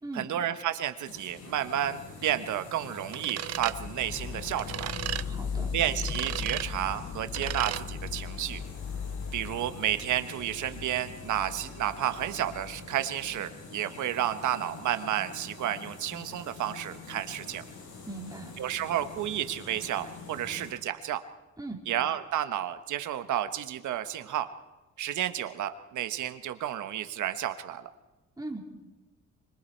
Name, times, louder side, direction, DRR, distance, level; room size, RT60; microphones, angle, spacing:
voice 1, 0.1-4.9 5.7-8.6 9.3-17.6 18.6-21.2 21.9-24.5 25.0-27.9, right 11 dB, 75° right, 10 dB, 1.3 m, -31 dB
sound 1, 1.0-20.7, left 4 dB, 75° left, 6.5 m, -46 dB
sound 2, 3.1-3.8 4.6-5.3 6.0-6.7 7.3-7.8, right 12 dB, 55° right, 0.6 m, -34 dB
sound 3, 3.5-13.4, left 6 dB, 40° left, 0.9 m, -38 dB
voice 2, 5.2-5.7 18.1-18.5 21.6-21.8 28.4-28.6, right 2 dB, 10° right, 1 dB, 4.0 m, -39 dB
25.0 x 22.5 x 4.6 m, 1.2 s
cardioid pair, 90°, 30 cm